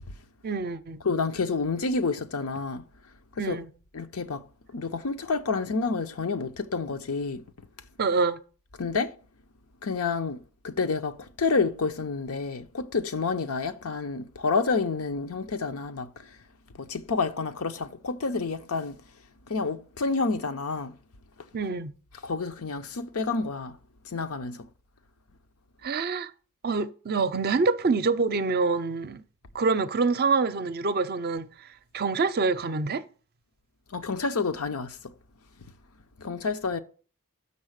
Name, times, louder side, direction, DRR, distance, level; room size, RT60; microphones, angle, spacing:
voice 1, 0.4-1.0 3.4-3.7 8.0-8.4 21.5-21.9 25.8-26.3 26.6-29.2 29.5-31.5 31.9-33.0, right 4 dB, 45° right, 0.5 m, -26 dB
voice 2, 1.0-2.8 3.4-3.6 3.9-4.4 4.7-7.4 8.8-9.1 9.8-16.3 16.7-19.0 19.5-21.0 22.2-23.8 24.0-24.7 33.9-35.1 36.2-36.8, left 4 dB, 80° left, 0.7 m, -29 dB
6.5 x 5.5 x 6.4 m
head